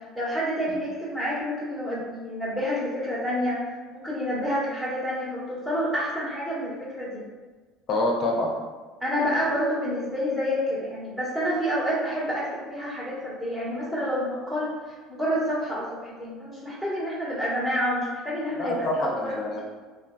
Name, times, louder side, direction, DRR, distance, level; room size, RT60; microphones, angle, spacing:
voice 1, 0.1-7.2 9.0-14.7 15.1-18.8 19.2-19.6, equal, 5° right, -9 dB, 1.1 m, -28 dB
voice 2, 7.9-8.6 18.6-19.6, left 1 dB, 50° left, -1 dB, 0.6 m, -26 dB
3.2 x 2.3 x 2.3 m, 1.3 s
hypercardioid pair, 75°, 0 cm